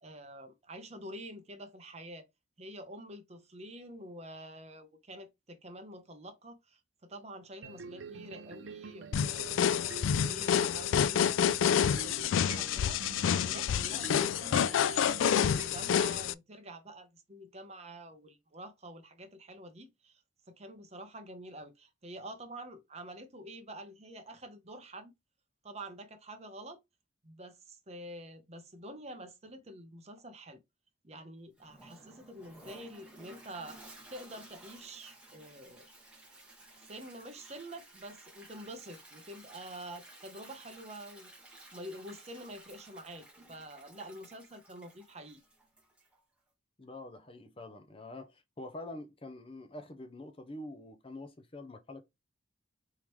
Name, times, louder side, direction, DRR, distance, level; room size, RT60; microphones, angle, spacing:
voice 1, 0.0-2.3 2.6-20.2 20.5-25.1 25.6-26.8 27.2-30.6 31.0-33.8 34.1-35.9 36.7-41.3 41.7-45.4, right 1 dB, 35° right, 1.0 m, -47 dB
sound 1, 7.6-15.9, right 5 dB, 70° right, 0.6 m, -47 dB
sound 2, 9.1-16.3, left 8 dB, 80° left, 0.3 m, -28 dB
Toilet flush, 31.6-46.2, right 1 dB, 5° right, 1.5 m, -55 dB
voice 2, 46.8-52.1, left 2 dB, 30° left, 0.6 m, -46 dB
4.6 x 3.7 x 3.1 m
head